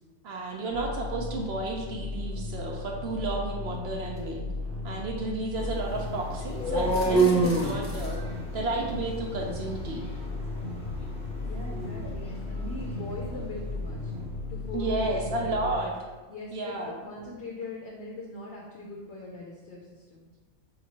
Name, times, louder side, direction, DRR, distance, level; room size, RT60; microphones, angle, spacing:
voice 1, 0.2-4.4 4.8-8.2 8.5-10.1 14.7-15.9 16.5-17.0, right 2 dB, 65° right, 1 dB, 0.7 m, -32 dB
sound 1, 0.7-15.8, left 3 dB, 80° right, 1.2 m, -36 dB
sound 2, 2.5-2.6 4.0-4.2 6.8-8.2, left 1 dB, 35° left, 0.9 m, -44 dB
sound 3, 5.6-13.5, right 3 dB, 10° left, 0.4 m, -30 dB
voice 2, 11.4-14.1 14.5-15.8 16.3-20.3, left 2 dB, 65° left, -2 dB, 0.7 m, -41 dB
5.1 x 2.9 x 2.8 m, 1.3 s
omnidirectional pair, 1.4 m